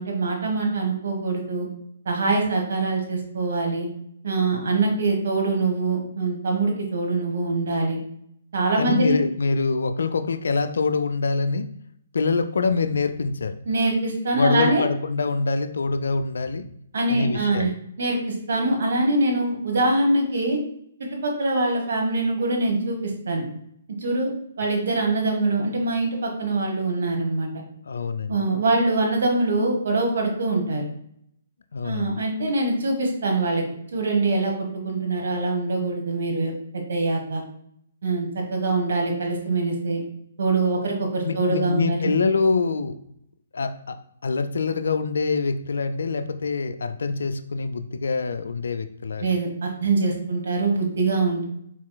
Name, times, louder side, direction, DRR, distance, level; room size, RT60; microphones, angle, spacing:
voice 1, 0.0-1.7 2.0-3.9 4.2-8.0 8.5-9.2 13.7-14.8 16.9-17.7 18.0-20.6 21.2-23.4 24.0-24.3 24.6-27.5 28.3-30.9 31.8-33.6 33.9-37.4 38.0-40.0 40.4-42.1 49.2-51.5, right 2 dB, 65° right, 1 dB, 1.1 m, -24 dB
voice 2, 8.8-11.7 12.1-13.5 14.4-16.7 17.1-17.7 27.9-28.4 31.7-32.2 41.2-43.0 43.5-49.3, left 4 dB, 70° left, 10 dB, 0.3 m, -25 dB
4.4 x 4.0 x 2.2 m, 0.72 s
figure-of-eight pair, 130°, 0 cm